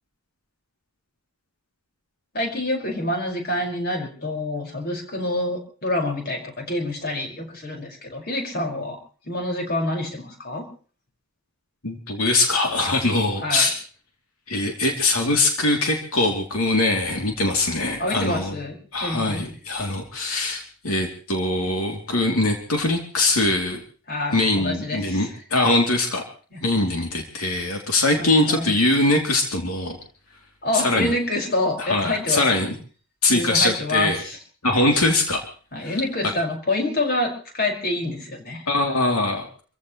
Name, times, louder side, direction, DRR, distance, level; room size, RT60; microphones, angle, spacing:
voice 1, 2.3-9.0 9.2-10.6 13.4-13.7 18.0-19.5 24.1-25.3 26.5-26.6 28.2-28.7 30.6-32.7 33.3-34.4 35.7-38.6, left 1 dB, 45° left, 1 dB, 5.5 m, -27 dB
voice 2, 11.8-13.7 14.5-18.5 18.9-23.8 24.3-26.2 26.6-30.0 30.7-31.1 31.8-32.7 33.2-34.2 34.6-35.4 35.8-36.0 38.7-39.5, left 2 dB, 85° left, 2 dB, 3.0 m, -22 dB
27.0 x 15.5 x 3.2 m, 0.40 s
head